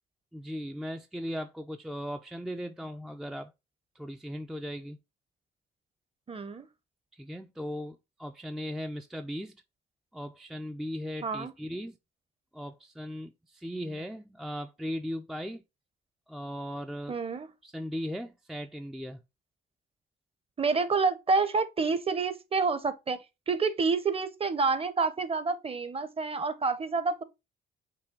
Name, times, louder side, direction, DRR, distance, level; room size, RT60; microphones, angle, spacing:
voice 1, 0.3-3.5 4.0-5.0 7.1-9.6 10.1-12.0 12.5-15.6 16.3-17.2 17.6-19.2, equal, ahead, 0.3 m, -38 dB
voice 2, 6.3-6.7 11.2-11.5 17.1-17.5 20.6-23.2 23.5-27.2, right 4 dB, 30° right, 0.7 m, -28 dB
5.5 x 2.2 x 3.7 m
cardioid pair, 90°, 20 cm